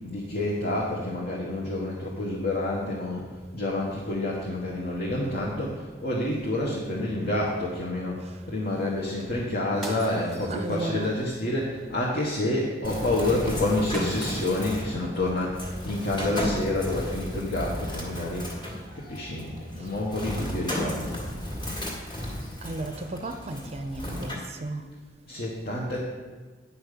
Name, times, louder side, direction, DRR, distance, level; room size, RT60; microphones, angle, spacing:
voice 1, 0.0-18.5 18.9-21.2 25.3-26.0, left 1 dB, 50° left, -4 dB, 1.5 m, -28 dB
sound 1, 9.7-11.2 13.9-14.8, right 2 dB, ahead, 1.3 m, -42 dB
voice 2, 10.5-11.1 22.6-24.8, right 2 dB, 35° right, 7 dB, 0.6 m, -34 dB
Bird, 12.8-24.3, left 1 dB, 25° left, 2.0 m, -34 dB
9.9 x 5.8 x 6.7 m, 1.4 s
head